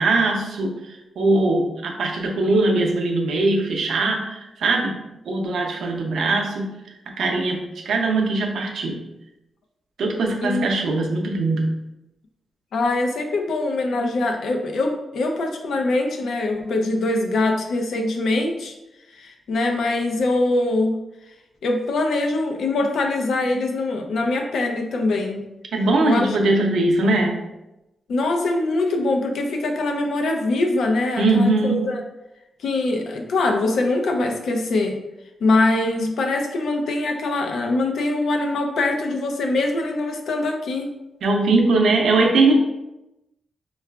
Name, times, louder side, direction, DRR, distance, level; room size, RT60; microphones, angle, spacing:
voice 1, 0.0-5.0 5.3-6.7 7.2-9.0 10.0-11.7 25.7-27.4 31.2-31.9 41.2-42.5, right 2 dB, 80° right, 2 dB, 0.5 m, -21 dB
voice 2, 12.7-18.7 19.2-21.0 21.6-25.4 26.0-26.4 28.1-32.0 32.6-35.0 35.4-40.9, left 2 dB, 75° left, 3 dB, 0.5 m, -23 dB
4.6 x 2.3 x 2.2 m, 0.95 s
wide cardioid pair, 160°, 0 cm